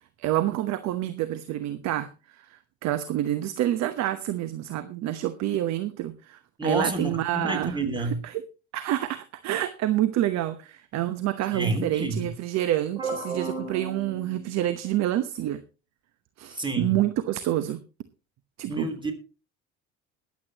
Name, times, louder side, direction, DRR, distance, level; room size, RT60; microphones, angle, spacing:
voice 1, 0.2-7.8 8.7-13.0 13.2-15.6 16.4-17.8 18.6-18.9, right 13 dB, 50° right, 12 dB, 1.0 m, -28 dB
voice 2, 6.6-8.2 11.5-12.3 13.0-14.5 16.5-17.0 18.7-19.1, right 2 dB, 15° right, 7 dB, 3.2 m, -30 dB
21.0 x 8.5 x 2.9 m, 0.33 s
hypercardioid pair, 65°, 34 cm